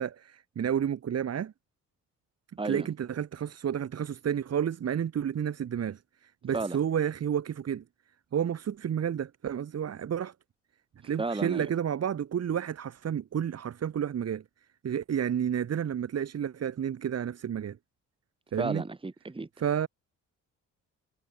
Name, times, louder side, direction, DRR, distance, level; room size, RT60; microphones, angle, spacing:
voice 1, 0.0-1.5 2.6-7.8 8.3-10.3 11.0-14.4 14.8-17.8 18.5-18.8 19.6-19.9, right 9 dB, 55° right, 3.2 m, -31 dB
voice 2, 2.6-2.9 6.5-6.8 11.2-11.7 18.6-19.5, right 3 dB, 15° right, 2.9 m, -33 dB
cardioid pair, 90°, 30 cm